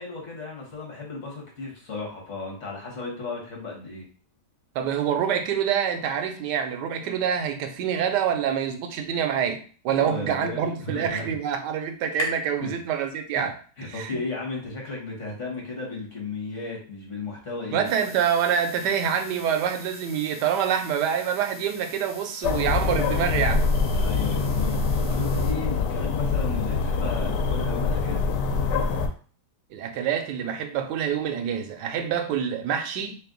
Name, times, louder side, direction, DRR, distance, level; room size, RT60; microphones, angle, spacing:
voice 1, 0.0-4.0 9.9-11.3 12.6-12.7 13.3-13.5 13.8-17.9 23.9-28.3, left 3 dB, 50° left, 1.6 m, -35 dB
voice 2, 4.7-13.6 13.9-14.2 17.7-23.6 29.7-33.2, right 8 dB, 90° right, 1.3 m, -26 dB
sound 1, 9.8-13.6, left 2 dB, 70° left, 1.3 m, -40 dB
sound 2, 17.8-25.5, equal, 15° right, 1.3 m, -45 dB
sound 3, 22.4-29.1, left 4 dB, 90° left, 1.3 m, -24 dB
3.3 x 3.2 x 3.8 m
omnidirectional pair, 1.8 m